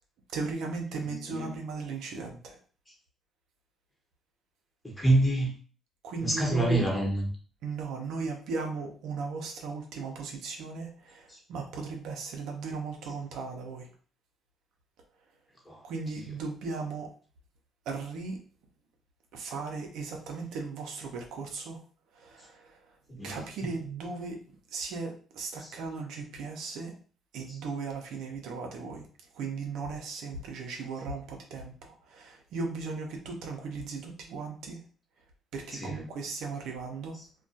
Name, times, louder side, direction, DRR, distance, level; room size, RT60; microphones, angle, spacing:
voice 1, 0.3-2.6 6.0-6.9 7.6-13.9 15.8-17.1 17.9-18.4 19.3-21.8 22.1-23.0 23.2-24.4 24.7-26.9 27.3-29.1 29.3-34.8 35.5-37.2, right 4 dB, 80° right, 2 dB, 0.5 m, -37 dB
voice 2, 1.0-1.6 4.8-5.5 6.2-7.2 11.3-11.4 13.0-13.1 15.7-15.8 16.1-16.4 23.1-23.7 27.5-27.6 35.7-36.1 37.1-37.2, right 1 dB, 15° left, -1 dB, 1.0 m, -28 dB
2.3 x 2.2 x 2.6 m, 0.41 s
cardioid pair, 85°, 0 cm